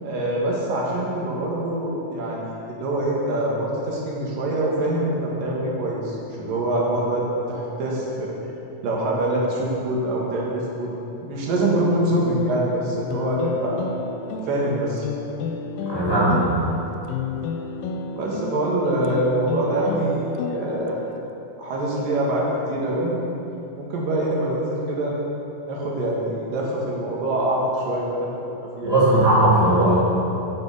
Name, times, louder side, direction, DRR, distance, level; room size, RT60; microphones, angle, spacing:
voice 1, 0.0-8.3 8.8-10.9 11.2-13.8 14.4-15.1 18.1-21.0 21.6-23.1 23.8-25.2 25.7-28.3 28.8-29.0, right 1 dB, 75° right, -4 dB, 3.4 m, -24 dB
sound 1, 13.1-21.2, left 5 dB, 90° left, 2.3 m, -32 dB
voice 2, 15.8-16.6 28.8-30.0, right 1 dB, 15° left, -9 dB, 1.7 m, -18 dB
9.9 x 7.3 x 7.0 m, 2.9 s
omnidirectional pair, 3.9 m